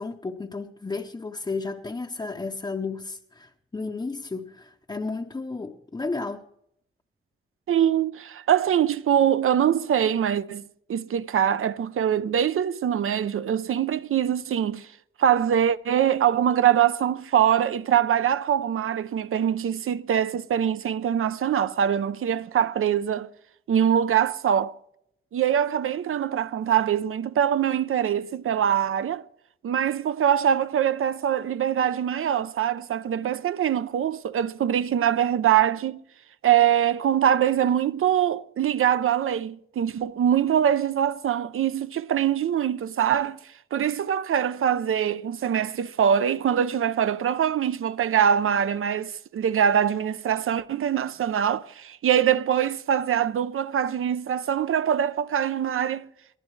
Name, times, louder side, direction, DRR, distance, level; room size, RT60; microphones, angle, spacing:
voice 1, 0.0-6.4, left 3 dB, 20° left, 0.6 m, -33 dB
voice 2, 7.7-14.9 15.2-23.3 23.7-24.8 25.3-29.2 29.6-36.0 36.4-43.4 43.7-56.1, right 9 dB, 85° right, 0.6 m, -23 dB
22.5 x 15.0 x 3.2 m
wide cardioid pair, 165°, 21 cm